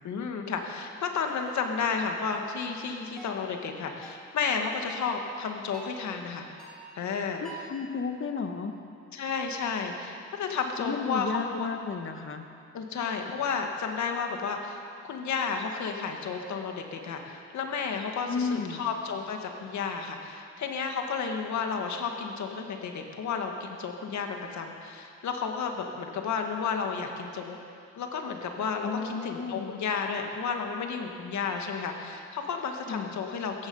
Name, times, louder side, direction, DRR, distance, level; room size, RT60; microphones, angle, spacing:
voice 1, 0.0-6.6 6.9-7.4 9.1-11.7 12.7-27.6 28.0-33.7, left 5 dB, 70° left, 3 dB, 1.9 m, -32 dB
sound 1, 1.4-1.6 2.3-2.6 3.2-3.4 4.0-4.3 4.9-5.2 5.7-6.0 6.6-6.9 7.4-7.8, right 3 dB, ahead, 2.7 m, -47 dB
voice 2, 7.4-8.8 10.8-12.5 18.3-18.9 28.8-29.7 32.9-33.2, left 5 dB, 40° left, 6 dB, 1.5 m, -33 dB
15.5 x 15.0 x 5.6 m, 2.5 s
cardioid pair, 90°, 30 cm